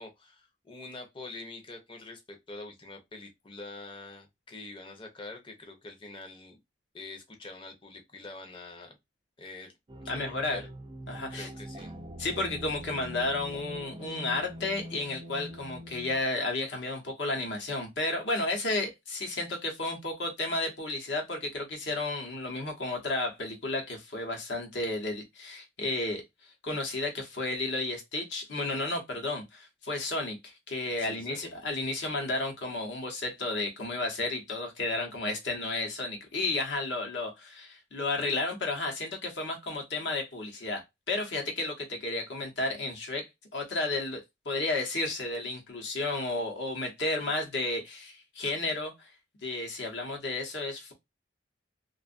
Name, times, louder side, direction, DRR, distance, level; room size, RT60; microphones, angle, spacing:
voice 1, 0.0-6.6 6.9-9.0 9.4-9.7 10.0-10.7 11.3-11.9 31.0-31.5, left 2 dB, 25° left, 0.6 m, -45 dB
sound 1, 9.9-16.2, equal, 25° right, 0.3 m, -43 dB
voice 2, 10.1-10.6 11.1-11.5 12.2-26.2 26.6-49.1 49.4-50.9, left 2 dB, 65° left, 1.0 m, -32 dB
2.5 x 2.4 x 2.4 m
head